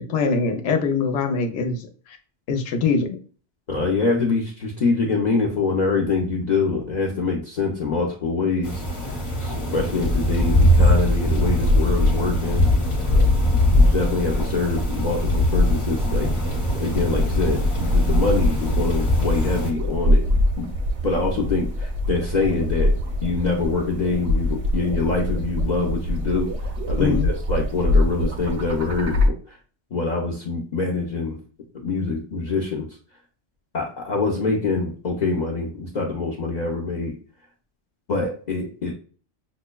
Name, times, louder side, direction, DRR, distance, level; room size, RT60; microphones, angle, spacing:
voice 1, 0.0-2.2 2.5-3.2 26.9-27.3, left 4 dB, 80° left, 4 dB, 0.9 m, -23 dB
voice 2, 3.7-12.6 13.7-16.3 16.8-20.7 21.0-23.0 23.2-26.5 26.9-29.6 29.9-31.4 31.8-32.9 33.7-37.2 38.1-38.9, left 3 dB, 50° left, -2 dB, 0.6 m, -25 dB
sound 1, 8.6-19.7, left 1 dB, 30° left, 0.9 m, -22 dB
sound 2, 11.4-29.3, left 1 dB, 90° right, 1.0 m, -24 dB
sound 3, 15.9-29.3, left 1 dB, 50° right, 0.4 m, -33 dB
5.8 x 2.1 x 2.2 m, 0.41 s
omnidirectional pair, 1.2 m